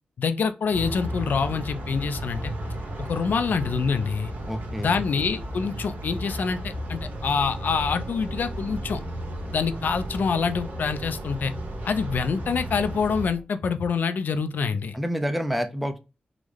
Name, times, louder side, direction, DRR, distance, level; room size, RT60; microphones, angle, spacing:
voice 1, 0.2-2.5 3.0-4.3 4.8-9.0 9.5-11.5 11.9-15.0, left 5 dB, 70° left, 0.4 m, -26 dB
sound 1, 0.7-13.3, right 1 dB, 85° right, 1.1 m, -34 dB
voice 2, 4.5-5.0 14.9-16.0, equal, ahead, 0.4 m, -28 dB
sound 2, 6.9-13.4, right 2 dB, 50° right, 0.8 m, -42 dB
3.7 x 2.1 x 3.1 m
wide cardioid pair, 155°, 3 cm